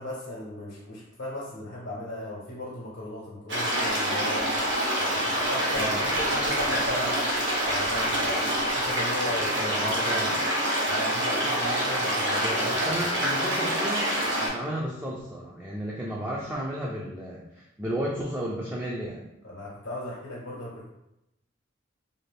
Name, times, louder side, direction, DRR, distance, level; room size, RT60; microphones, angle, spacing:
voice 1, 0.0-4.5 5.0-7.3 7.7-10.0 10.9-13.1 19.4-20.9, left 1 dB, 80° left, -5 dB, 0.8 m, -37 dB
sound 1, 3.5-14.5, equal, 70° right, 0.9 m, -26 dB
voice 2, 5.7-6.1 9.3-10.4 12.4-14.1 14.4-19.2, equal, 10° right, -4 dB, 0.3 m, -33 dB
2.6 x 2.4 x 3.2 m, 0.87 s
head